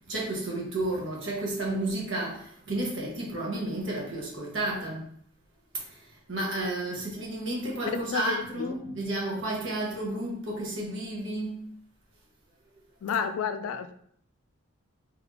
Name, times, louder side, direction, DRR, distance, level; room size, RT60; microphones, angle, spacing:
voice 1, 0.1-5.1 5.9-6.0 6.3-11.6, right 1 dB, 60° right, -3 dB, 1.4 m, -32 dB
voice 2, 7.9-8.8 13.0-13.9, left 6 dB, 80° left, 11 dB, 0.3 m, -31 dB
4.2 x 3.6 x 2.8 m, 0.66 s
head